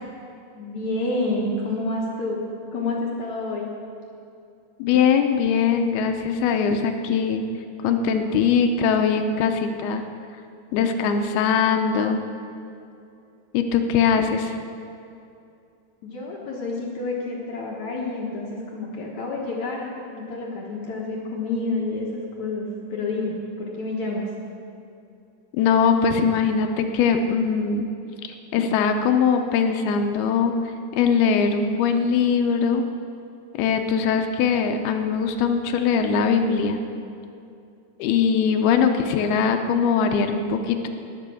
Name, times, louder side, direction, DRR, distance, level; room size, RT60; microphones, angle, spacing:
voice 1, 0.6-2.4 2.7-3.7 16.0-22.7 22.9-24.3, left 2 dB, 65° left, -2 dB, 1.8 m, -29 dB
voice 2, 4.8-7.4 7.8-10.0 10.7-12.2 13.5-14.5 25.5-27.9 28.2-30.5 30.9-32.8 33.5-36.8 38.0-40.9, left 6 dB, 80° left, 5 dB, 2.2 m, -21 dB
19.5 x 8.4 x 7.0 m, 2.6 s
omnidirectional pair, 5.4 m